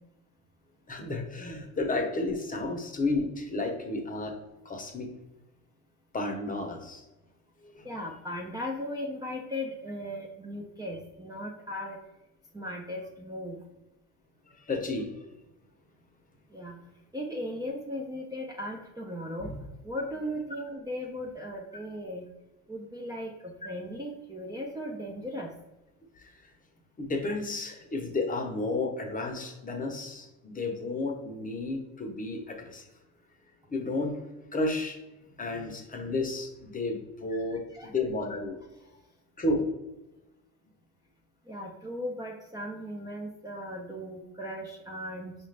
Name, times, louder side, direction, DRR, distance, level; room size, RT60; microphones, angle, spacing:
voice 1, 0.9-4.3 4.6-5.1 6.1-7.0 7.6-7.9 14.5-15.2 26.2-26.3 27.0-32.9 33.7-34.2 34.5-35.0 35.4-38.6 39.4-39.7, left 2 dB, 20° left, 4 dB, 0.8 m, -32 dB
voice 2, 7.8-12.0 12.5-13.6 16.5-16.8 17.1-22.3 22.7-25.5 37.3-37.9 38.7-38.8 41.5-45.4, left 1 dB, 10° right, -1 dB, 0.4 m, -37 dB
4.9 x 2.4 x 3.3 m, 1.0 s
supercardioid pair, 90°, 39 cm